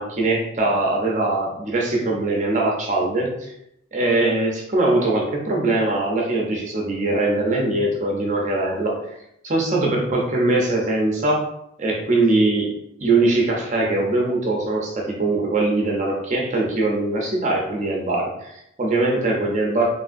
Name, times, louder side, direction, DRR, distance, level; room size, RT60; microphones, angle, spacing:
voice 1, 0.0-3.5 3.9-9.2 9.4-11.5 11.8-19.9, right 2 dB, 35° right, -1 dB, 0.6 m, -22 dB
3.4 x 2.5 x 2.5 m, 0.80 s
head